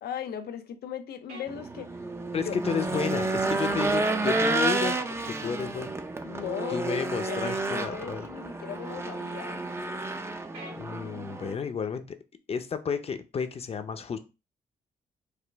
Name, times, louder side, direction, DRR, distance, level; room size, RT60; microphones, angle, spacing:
voice 1, 0.0-1.9 2.4-2.6 6.2-7.0 7.3-9.6, left 9 dB, 85° left, 0.6 m, -38 dB
sound 1, 1.3-1.5 4.4-4.6 7.4-7.7 10.5-10.8, right 1 dB, 80° right, 2.0 m, -42 dB
Race car auto racing / Engine, 1.5-11.6, right 2 dB, 15° right, 0.4 m, -30 dB
voice 2, 2.3-6.0 6.7-8.3 10.8-12.0 12.5-14.2, left 6 dB, 40° left, 0.6 m, -32 dB
5.0 x 2.4 x 3.4 m
cardioid pair, 120°, 16 cm